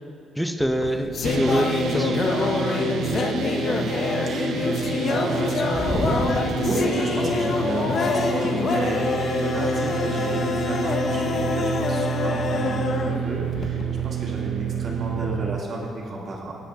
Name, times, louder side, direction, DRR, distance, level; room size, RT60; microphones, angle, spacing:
voice 1, 0.4-3.0, equal, ahead, 5 dB, 0.7 m, -26 dB
sound 1, 0.6-14.0, left 4 dB, 55° left, 0.7 m, -25 dB
sound 2, 1.2-15.6, right 9 dB, 70° right, 0.5 m, -29 dB
voice 2, 4.2-4.5 5.0-10.4 10.7-16.5, right 1 dB, 55° right, -2 dB, 1.8 m, -31 dB
16.0 x 8.1 x 2.8 m, 2.4 s
cardioid pair, 90°, 0 cm